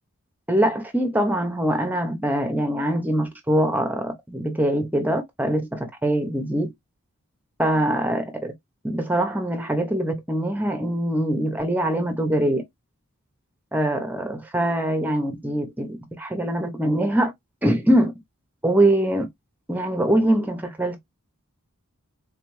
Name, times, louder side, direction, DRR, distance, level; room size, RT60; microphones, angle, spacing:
voice 1, 0.5-6.7 7.6-8.5 8.8-12.6 13.7-17.3 17.6-18.1 18.6-19.2 19.7-21.0, right 1 dB, 10° right, 0.7 m, -23 dB
3.8 x 3.2 x 3.1 m
head